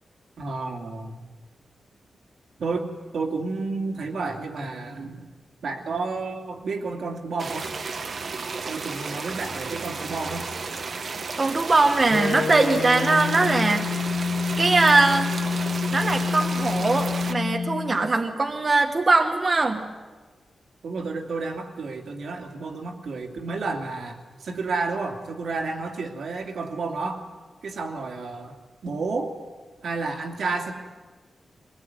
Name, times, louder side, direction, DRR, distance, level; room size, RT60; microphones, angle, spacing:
voice 1, 0.4-1.2 2.6-2.9 3.1-5.3 5.6-7.7 8.7-10.5 20.8-27.3 27.6-29.4 29.8-30.7, right 3 dB, 75° right, 3 dB, 2.7 m, -31 dB
sound 1, 7.4-17.3, right 4 dB, 50° right, 1.4 m, -33 dB
voice 2, 11.1-13.8 14.6-15.3 15.9-19.9, right 3 dB, 30° right, 4 dB, 1.3 m, -21 dB
sound 2, 12.1-18.2, left 6 dB, 80° left, 1.7 m, -28 dB
22.0 x 20.0 x 9.7 m, 1.3 s
wide cardioid pair, 135°, 0 cm